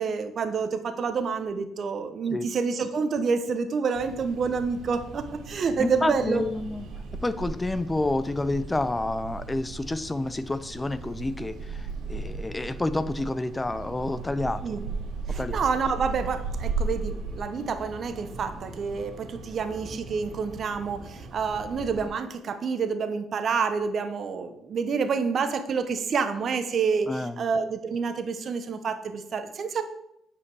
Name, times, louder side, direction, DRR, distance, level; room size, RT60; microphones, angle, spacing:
voice 1, 0.0-6.4 14.6-14.8 15.3-29.8, right 5 dB, 55° right, 8 dB, 1.0 m, -28 dB
sound 1, 3.9-22.1, right 3 dB, 80° right, 2.3 m, -37 dB
voice 2, 5.8-6.9 7.2-11.8 12.1-14.7 15.4-15.6 27.1-27.4, left 2 dB, 20° left, 14 dB, 0.6 m, -29 dB
8.5 x 5.1 x 4.8 m, 0.79 s
supercardioid pair, 70°, 0 cm